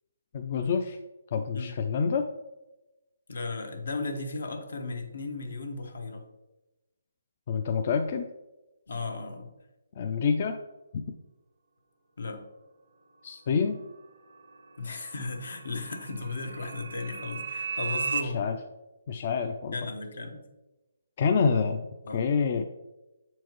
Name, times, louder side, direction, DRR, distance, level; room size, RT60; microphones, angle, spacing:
voice 1, 0.3-1.0 1.3-2.2 7.5-8.2 10.0-10.6 13.2-13.8 18.2-18.6 19.1-19.8 21.2-21.9 22.1-22.6, left 5 dB, 40° left, 6 dB, 0.4 m, -27 dB
voice 2, 3.3-6.3 8.9-9.5 12.2-12.4 14.8-18.5 19.7-20.5 22.0-22.3, left 3 dB, 75° left, 5 dB, 1.1 m, -35 dB
sound 1, 13.9-18.2, right 5 dB, 70° right, 0.6 m, -36 dB
7.1 x 4.5 x 3.0 m, 1.0 s
hypercardioid pair, 155°, 0 cm